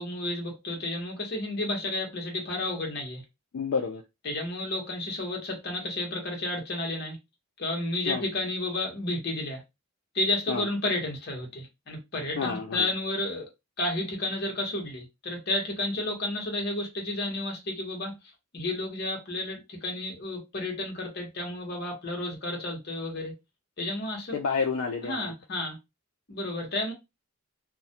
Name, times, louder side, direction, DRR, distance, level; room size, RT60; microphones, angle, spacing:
voice 1, 0.0-3.2 4.2-7.2 7.6-9.6 10.1-13.5 13.8-18.1 18.5-23.3 23.8-24.4 25.0-25.8 26.3-26.9, left 2 dB, 50° left, 0.8 m, -31 dB
voice 2, 3.5-4.0 8.1-8.2 10.5-10.7 12.4-12.9 24.3-25.3, left 5 dB, 70° left, 0.4 m, -29 dB
2.2 x 2.1 x 2.7 m
head